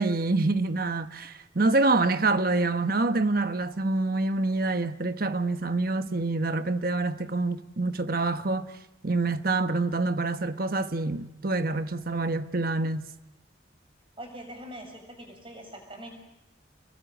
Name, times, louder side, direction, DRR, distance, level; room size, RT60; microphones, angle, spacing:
voice 1, 0.0-8.7 9.0-13.1, right 3 dB, 50° right, 1.1 m, -26 dB
voice 2, 14.2-16.1, right 1 dB, 30° right, 7.2 m, -43 dB
28.0 x 22.0 x 9.0 m
head